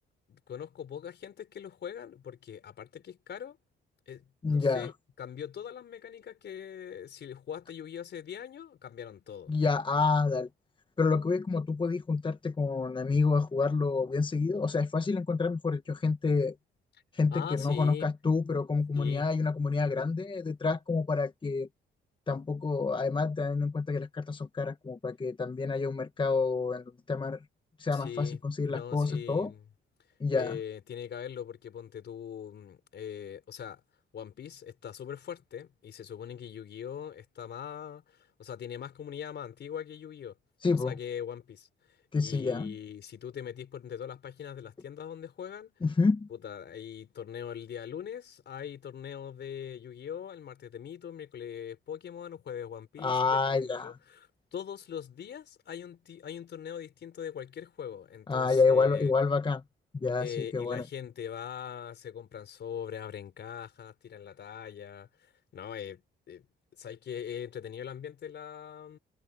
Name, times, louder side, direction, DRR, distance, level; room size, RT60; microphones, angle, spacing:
voice 1, 0.3-3.6 4.1-4.9 5.2-9.5 17.3-18.0 18.9-19.2 19.8-20.0 27.9-28.4 28.6-29.6 30.3-33.8 34.1-40.4 40.7-42.0 42.2-45.7 46.3-59.1 60.2-66.5 66.8-69.0, left 8 dB, 60° left, 4.6 m, -41 dB
voice 2, 4.4-4.9 9.5-10.5 11.0-16.5 17.1-21.7 22.3-27.4 27.8-29.5 30.2-30.6 40.6-40.9 42.1-42.7 45.8-46.3 53.0-54.0 58.3-59.6 60.0-60.8, left 4 dB, 25° left, 1.2 m, -28 dB
cardioid pair, 90°, 20 cm